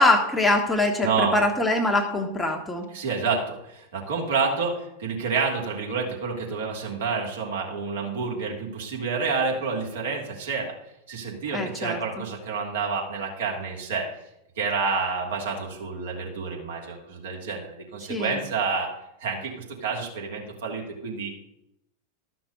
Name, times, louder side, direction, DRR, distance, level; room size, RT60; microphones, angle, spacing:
voice 1, 0.0-2.9 11.5-12.0 18.1-18.4, left 2 dB, 10° left, 3 dB, 1.2 m, -23 dB
voice 2, 1.0-1.4 2.9-10.7 11.1-14.1 14.6-18.9 19.2-21.3, right 4 dB, 60° right, -1 dB, 3.2 m, -29 dB
13.0 x 6.0 x 6.6 m, 0.81 s
figure-of-eight pair, 90°, 0 cm